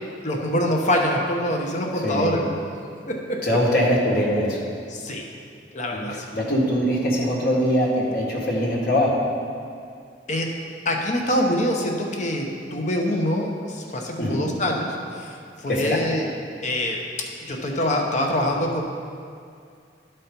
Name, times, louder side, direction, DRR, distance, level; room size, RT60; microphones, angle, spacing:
voice 1, 0.2-2.5 3.1-3.4 4.9-5.2 5.7-6.2 10.3-10.5 10.8-16.3 16.6-17.0 17.4-18.8, left 1 dB, 45° left, 1 dB, 0.9 m, -25 dB
voice 2, 1.9-2.3 3.4-4.6 5.9-6.0 6.3-9.1 14.2-14.4 15.7-16.0, equal, 60° left, -4 dB, 1.7 m, -22 dB
11.0 x 4.4 x 5.3 m, 2.3 s
head